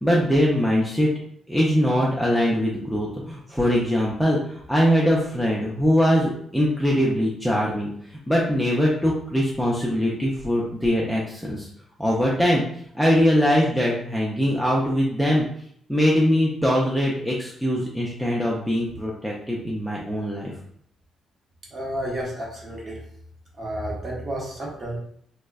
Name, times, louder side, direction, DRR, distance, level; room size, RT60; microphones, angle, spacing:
voice 1, 0.0-1.1 1.5-11.7 12.0-12.6 12.9-15.5 15.9-20.5, equal, ahead, -5 dB, 0.3 m, -22 dB
voice 2, 21.7-23.0 23.6-25.0, right 1 dB, 30° right, -3 dB, 0.8 m, -31 dB
3.3 x 2.0 x 2.2 m, 0.65 s
cardioid pair, 165°, 0 cm